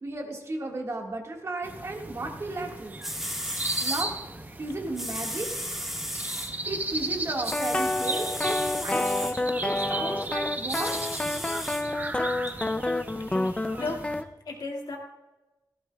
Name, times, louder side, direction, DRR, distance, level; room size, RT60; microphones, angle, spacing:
voice 1, 0.0-3.0 3.8-4.2 4.6-5.5 6.7-9.1 9.6-11.0, right 2 dB, 40° right, 0 dB, 1.8 m, -34 dB
sound 1, 1.6-14.2, right 2 dB, 25° right, 0.9 m, -36 dB
sound 2, 2.7-2.8 3.0-4.1 4.9-6.5 7.4-9.3 10.7-11.8 12.5-12.6, equal, 5° right, 1.6 m, -35 dB
sound 3, 7.3-14.3, left 2 dB, 15° left, 0.4 m, -29 dB
voice 2, 13.1-14.0 14.5-15.0, left 3 dB, 70° left, 1 dB, 2.1 m, -36 dB
16.5 x 15.0 x 2.4 m, 1.1 s
wide cardioid pair, 140°, 8 cm